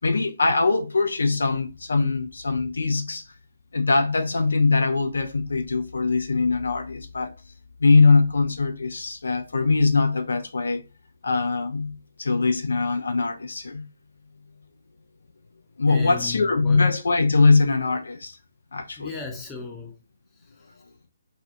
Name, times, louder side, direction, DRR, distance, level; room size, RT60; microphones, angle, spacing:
voice 1, 0.0-3.2 3.7-7.3 7.8-10.8 11.2-13.9 15.8-18.4 18.7-19.1, left 3 dB, 65° left, 0.4 m, -22 dB
voice 2, 15.9-16.8 19.0-20.0 20.3-20.8, left 5 dB, 10° left, 0.7 m, -36 dB
2.5 x 2.4 x 3.5 m
figure-of-eight pair, 135°, 0 cm